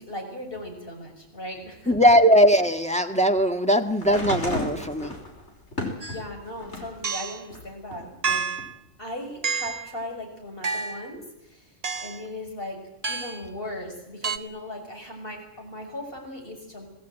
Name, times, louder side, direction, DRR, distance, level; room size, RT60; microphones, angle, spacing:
voice 1, 0.0-1.9 6.1-8.5 9.0-12.8 13.1-16.9, left 1 dB, 45° left, 2 dB, 6.4 m, -38 dB
voice 2, 1.9-5.2, equal, 5° left, 4 dB, 1.6 m, -19 dB
sound 1, 4.0-7.0 7.5-8.6 9.7-9.8, left 1 dB, 65° left, 5.6 m, -33 dB
sound 2, 6.0-6.2 7.0-7.4 8.2-8.7 9.4-9.9 10.6-11.1 11.8-12.2 13.0-13.5 14.2-14.4, right 5 dB, 35° right, 1.0 m, -29 dB
26.0 x 19.0 x 9.2 m, 0.89 s
omnidirectional pair, 1.3 m